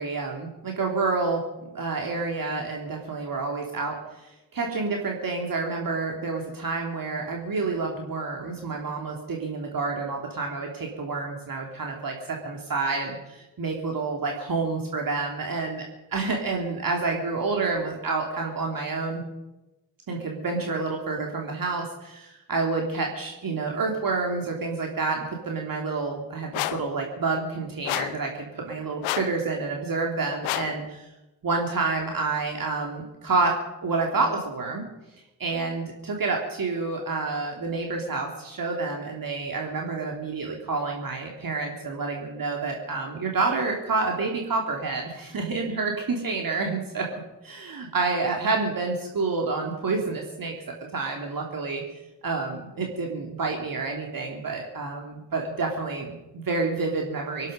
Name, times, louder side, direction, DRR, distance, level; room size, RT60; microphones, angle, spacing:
voice 1, 0.0-15.8 16.1-19.2 20.1-31.1 31.4-34.8 35.4-50.5 50.9-51.8 52.2-57.5, right 3 dB, 40° right, 0 dB, 3.3 m, -29 dB
sound 1, 26.5-26.9 27.8-28.2 29.0-29.4 30.4-30.8, left 15 dB, 75° left, 1.0 m, -29 dB
25.5 x 11.0 x 5.3 m, 1.0 s
hypercardioid pair, 45°, 49 cm